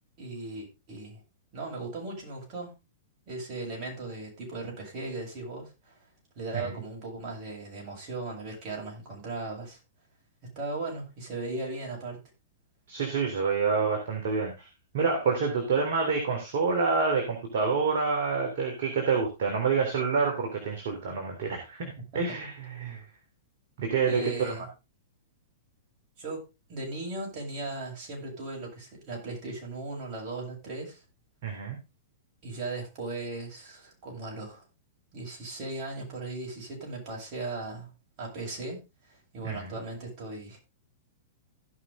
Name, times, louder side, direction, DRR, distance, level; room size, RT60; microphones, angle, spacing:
voice 1, 0.2-1.2 1.5-2.7 3.3-6.0 6.4-9.8 10.5-12.2 22.1-22.2 24.0-24.7 26.2-26.4 26.7-31.0 32.4-34.6 35.1-37.9 38.2-38.8 39.3-40.6, right 2 dB, 45° right, 7.9 m, -37 dB
voice 2, 12.9-14.7 14.9-23.0 23.8-24.6 31.4-31.8 39.4-39.7, right 5 dB, 60° right, 3.5 m, -28 dB
16.5 x 6.1 x 3.7 m
hypercardioid pair, 110°, 0 cm